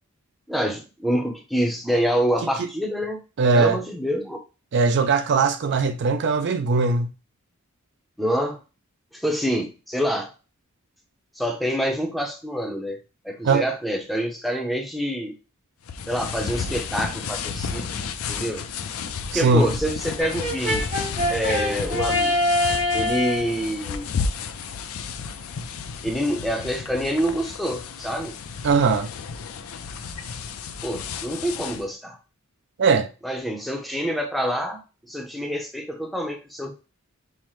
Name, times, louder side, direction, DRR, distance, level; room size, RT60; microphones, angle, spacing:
voice 1, 0.5-3.2 3.5-4.4 8.2-8.6 9.1-10.3 11.4-13.0 13.2-15.4 16.1-17.9 18.3-18.7 19.3-20.9 21.3-22.4 22.9-24.1 26.0-28.3 30.8-32.2 33.2-34.8 35.1-36.7, equal, ahead, 0.6 m, -26 dB
voice 2, 3.4-3.8 4.7-7.1 13.4-13.6 19.3-19.7 28.6-29.1 32.8-33.1, right 4 dB, 55° right, 0.4 m, -20 dB
sound 1, 15.9-31.8, left 5 dB, 70° left, 0.4 m, -32 dB
Brass instrument, 20.2-23.5, left 1 dB, 30° right, 0.9 m, -24 dB
5.5 x 2.1 x 3.1 m
head